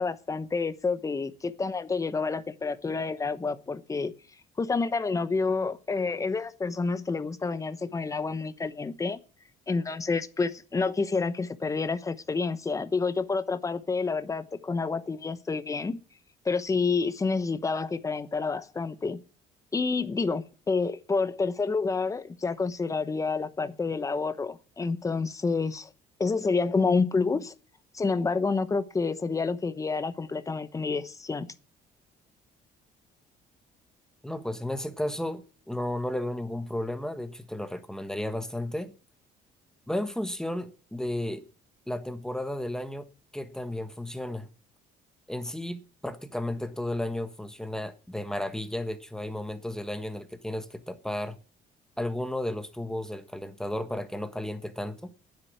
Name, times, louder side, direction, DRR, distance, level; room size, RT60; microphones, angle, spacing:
voice 1, 0.0-4.1 4.6-9.2 9.7-16.0 16.4-19.2 19.7-25.9 26.2-27.5 27.9-31.5, left 4 dB, 20° left, 1.0 m, -28 dB
voice 2, 34.2-38.9 39.9-41.4 41.9-43.1 43.3-44.5 45.3-51.4 52.0-55.1, left 1 dB, 5° left, 1.3 m, -33 dB
9.8 x 7.8 x 9.5 m
cardioid pair, 110°, 17 cm